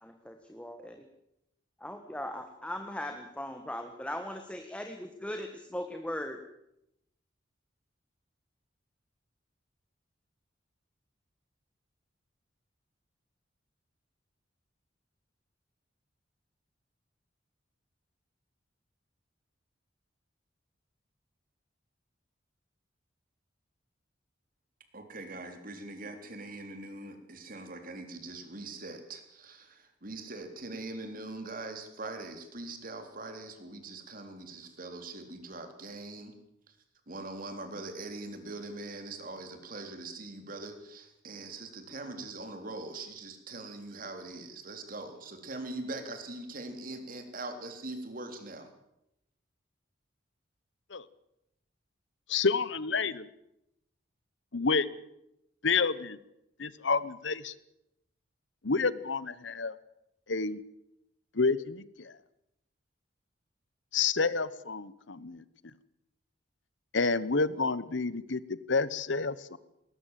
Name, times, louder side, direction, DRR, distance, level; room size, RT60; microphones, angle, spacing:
voice 1, 0.0-1.1 1.8-6.4, left 1 dB, 5° left, 5 dB, 1.6 m, -39 dB
voice 2, 24.9-36.3 36.7-36.8 37.1-48.7, right 2 dB, 45° right, 6 dB, 3.7 m, -42 dB
voice 3, 52.3-53.3 54.5-54.9 55.6-56.2 56.6-57.5 58.6-59.8 60.3-60.6 61.3-62.1 63.9-65.4 66.9-69.6, left 4 dB, 75° left, 18 dB, 1.1 m, -29 dB
20.5 x 20.0 x 7.6 m, 0.82 s
head